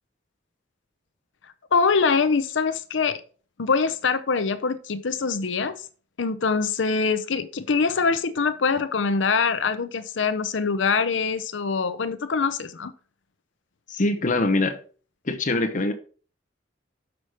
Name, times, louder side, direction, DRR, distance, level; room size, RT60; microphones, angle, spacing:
voice 1, 1.7-3.2 3.6-5.8 6.2-12.9, left 5 dB, 70° left, 0.6 m, -24 dB
voice 2, 13.9-14.8 15.2-15.9, left 2 dB, 45° left, 0.9 m, -23 dB
6.5 x 6.0 x 4.9 m
head